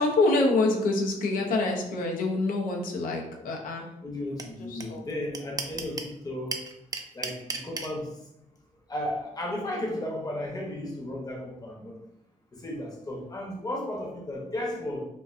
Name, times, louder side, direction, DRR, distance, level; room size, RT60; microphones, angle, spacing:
voice 1, 0.0-3.9 4.7-5.0, left 2 dB, 80° left, 2 dB, 0.5 m, -26 dB
voice 2, 4.0-6.6 7.1-8.1 8.9-12.0 12.5-15.0, left 1 dB, 25° left, -1 dB, 0.7 m, -34 dB
sound 1, 4.4-4.5 4.8-4.9 5.1-6.1 6.5-7.9, right 4 dB, 25° right, 0.3 m, -32 dB
2.4 x 2.2 x 2.4 m, 0.85 s
cardioid pair, 65°, 14 cm